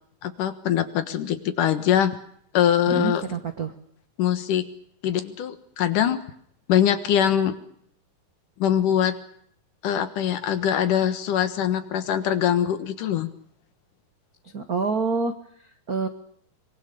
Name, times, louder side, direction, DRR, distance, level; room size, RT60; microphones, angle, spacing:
voice 1, 0.2-2.2 2.5-3.2 4.2-4.7 5.0-6.2 6.7-7.6 8.6-9.2 9.8-13.3, left 10 dB, 70° left, 10 dB, 2.9 m, -23 dB
voice 2, 2.9-3.7 14.4-16.1, right 4 dB, 65° right, 7 dB, 0.9 m, -28 dB
24.5 x 23.5 x 6.8 m, 0.66 s
omnidirectional pair, 4.0 m